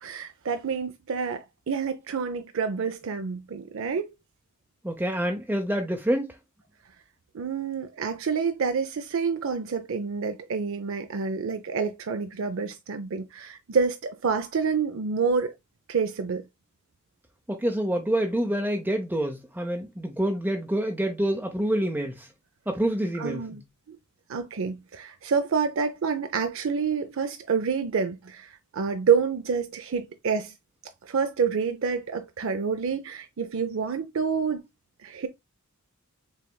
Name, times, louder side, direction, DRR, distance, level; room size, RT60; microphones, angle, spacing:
voice 1, 0.0-4.1 7.3-15.5 15.9-16.4 23.2-23.6 23.9-24.0 24.3-30.5 31.0-34.6 35.0-35.3, right 5 dB, 60° right, 0.5 m, -28 dB
voice 2, 4.8-6.3 17.5-22.3 22.7-23.6, right 1 dB, 10° right, 0.6 m, -27 dB
6.9 x 3.2 x 2.2 m
head